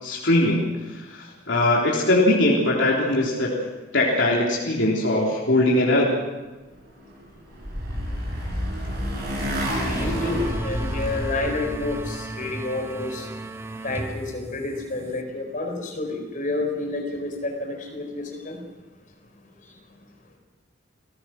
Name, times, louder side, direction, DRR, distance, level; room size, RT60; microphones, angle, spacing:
voice 1, 0.0-3.5 3.9-6.1, left 1 dB, 65° left, -3 dB, 3.7 m, -21 dB
Motorcycle, 7.1-12.1, equal, 50° right, 7.3 m, -29 dB
sound 1, 9.8-15.2, right 1 dB, 15° right, 1.1 m, -35 dB
voice 2, 9.9-13.3 13.8-18.6, left 2 dB, 40° left, 2 dB, 4.6 m, -29 dB
28.5 x 15.0 x 6.1 m, 1.2 s
head